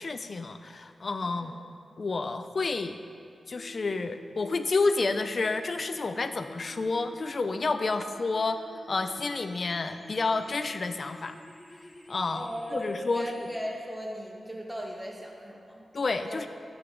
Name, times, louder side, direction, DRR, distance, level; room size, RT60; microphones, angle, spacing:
voice 1, 0.0-1.5 2.0-3.0 3.5-8.6 8.9-11.4 12.1-13.5 15.9-16.5, left 3 dB, 45° left, 9 dB, 0.5 m, -30 dB
voice 2, 1.2-1.6 7.9-8.1 12.3-15.9 16.2-16.5, equal, 10° right, -1 dB, 1.3 m, -38 dB
sound 1, 3.6-13.6, left 1 dB, 20° left, 0.9 m, -49 dB
8.8 x 7.8 x 3.8 m, 2.4 s
wide cardioid pair, 95°, 0 cm